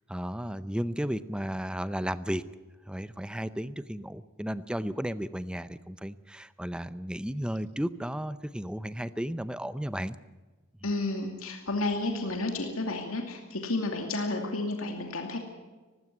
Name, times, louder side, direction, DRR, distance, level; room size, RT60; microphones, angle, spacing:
voice 1, 0.1-2.5 2.9-10.2, equal, 5° right, 14 dB, 0.6 m, -34 dB
voice 2, 10.8-15.4, left 2 dB, 90° left, 3 dB, 2.5 m, -31 dB
18.5 x 16.5 x 9.7 m, 1.3 s
head